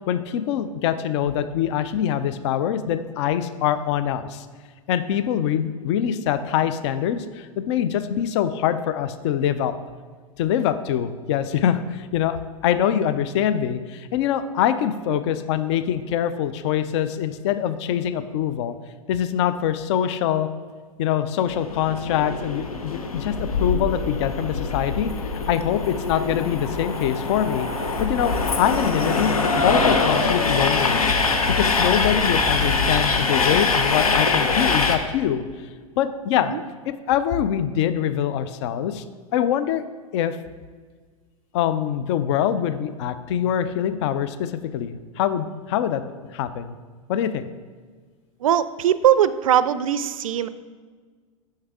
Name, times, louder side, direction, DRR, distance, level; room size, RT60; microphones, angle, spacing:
voice 1, 0.1-4.5 4.9-9.7 10.4-12.4 12.6-18.8 19.1-20.5 21.0-25.1 25.5-29.3 29.6-35.4 36.0-36.5 37.1-39.0 39.3-39.8 40.1-40.4 41.5-46.0 46.3-46.7 47.1-47.5, left 10 dB, 50° left, 12 dB, 0.4 m, -24 dB
Train, 21.5-35.0, left 4 dB, 85° left, 0.7 m, -23 dB
voice 2, 48.4-50.5, right 10 dB, 70° right, 15 dB, 0.4 m, -20 dB
6.4 x 5.6 x 3.5 m, 1.5 s
figure-of-eight pair, 100°, 18 cm